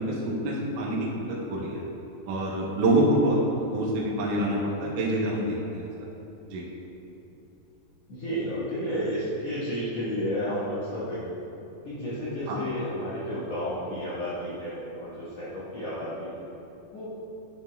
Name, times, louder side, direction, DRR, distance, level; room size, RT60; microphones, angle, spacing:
voice 1, 0.0-1.8 2.3-5.9 6.5-6.7 12.5-12.6, right 1 dB, 70° right, -4 dB, 2.0 m, -26 dB
voice 2, 8.1-11.4 11.8-16.4 16.9-17.1, equal, 55° left, -11 dB, 1.9 m, -32 dB
9.5 x 9.1 x 2.3 m, 2.9 s
omnidirectional pair, 4.8 m